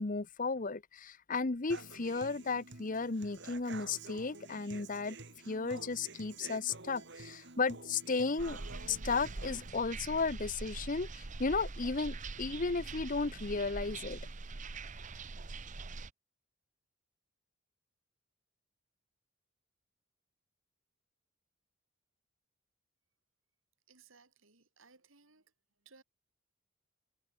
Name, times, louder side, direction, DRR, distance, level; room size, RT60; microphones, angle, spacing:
voice 1, 0.0-5.2 5.5-8.6 8.9-14.2, left 4 dB, 40° left, 0.8 m, -34 dB
Human voice / Acoustic guitar, 1.7-9.7, right 3 dB, 60° right, 3.6 m, -50 dB
sound 1, 8.4-16.1, right 3 dB, 35° right, 0.9 m, -43 dB
voice 2, 23.9-25.5 25.8-26.0, right 4 dB, 75° right, 3.9 m, -62 dB
head